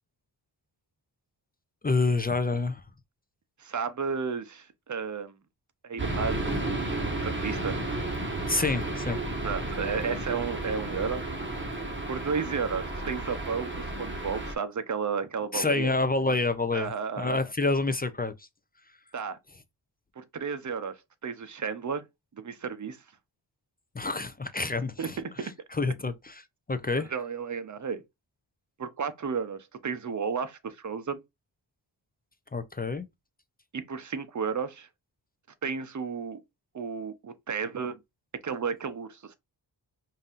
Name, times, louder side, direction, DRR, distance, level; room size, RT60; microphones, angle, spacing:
voice 1, 1.8-2.8 8.5-9.2 15.5-16.9 17.2-18.3 23.9-25.2 25.7-27.1 32.5-33.1, left 3 dB, 20° left, 0.5 m, -28 dB
voice 2, 3.6-5.4 5.8-7.8 9.4-11.2 12.1-15.9 16.7-17.4 19.1-19.4 20.2-22.0 22.4-23.0 25.0-25.5 26.9-28.0 28.8-31.2 33.7-34.9 35.6-36.4 36.7-38.0 38.4-39.3, right 6 dB, 40° right, 0.8 m, -33 dB
sound 1, 6.0-14.6, right 2 dB, 25° right, 1.5 m, -32 dB
5.2 x 2.8 x 2.5 m
cardioid pair, 75°, 44 cm